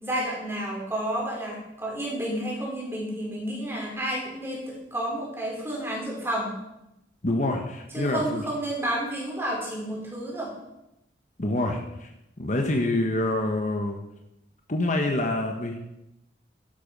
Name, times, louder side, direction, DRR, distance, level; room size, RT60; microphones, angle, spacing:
voice 1, 0.0-6.6 7.9-10.5, right 1 dB, 15° right, -3 dB, 4.4 m, -31 dB
voice 2, 7.2-8.4 11.4-12.1 12.4-14.0 14.7-15.8, left 1 dB, 45° left, 3 dB, 1.2 m, -26 dB
12.0 x 11.0 x 5.4 m, 0.88 s
head